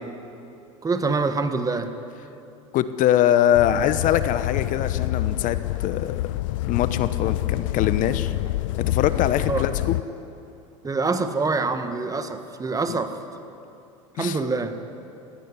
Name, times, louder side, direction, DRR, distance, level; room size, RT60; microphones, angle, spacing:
voice 1, 0.8-1.9 9.5-9.6 10.8-13.1 14.2-14.7, right 3 dB, 20° right, 8 dB, 1.7 m, -25 dB
voice 2, 2.7-6.3 6.6-8.3 8.9-10.0 14.2-14.4, left 11 dB, 50° left, 12 dB, 1.0 m, -23 dB
sound 1, 3.5-10.0, left 16 dB, 75° left, 0.4 m, -27 dB
18.5 x 16.5 x 10.0 m, 2.7 s
hypercardioid pair, 80°, 17 cm